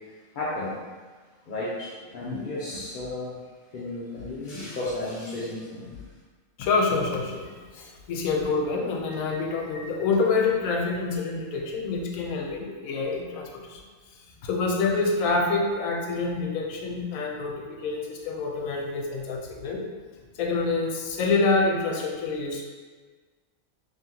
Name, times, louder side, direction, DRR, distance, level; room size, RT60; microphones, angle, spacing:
voice 1, 0.3-0.7 1.5-3.3 3.7-6.0, left 2 dB, 55° left, -8 dB, 0.6 m, -33 dB
voice 2, 6.6-13.8 14.4-19.9 20.3-22.6, left 3 dB, 85° left, 0 dB, 1.0 m, -27 dB
3.2 x 2.8 x 3.7 m, 1.4 s
omnidirectional pair, 1.4 m